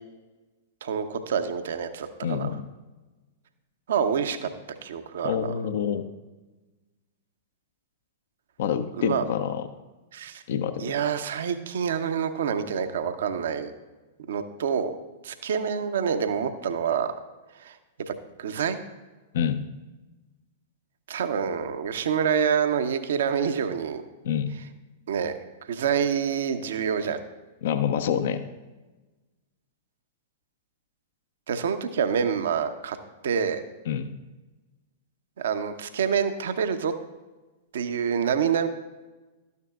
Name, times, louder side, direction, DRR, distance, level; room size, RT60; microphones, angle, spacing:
voice 1, 0.8-2.5 3.9-4.5 4.8-5.5 9.0-9.2 10.1-10.4 10.8-13.7 14.3-15.0 15.2-17.1 17.6-17.8 18.1-18.8 21.1-24.0 25.1-25.3 25.7-27.2 31.5-33.0 33.2-33.6 35.4-36.9 37.7-38.7, right 7 dB, 65° right, 9 dB, 0.7 m, -27 dB
voice 2, 2.2-2.7 5.2-6.1 8.6-9.7 10.5-10.9 19.3-19.6 24.2-24.6 27.6-28.4 33.9-34.1, left 8 dB, 60° left, 10 dB, 0.5 m, -27 dB
12.5 x 9.4 x 2.4 m, 1.2 s
figure-of-eight pair, 100°, 0 cm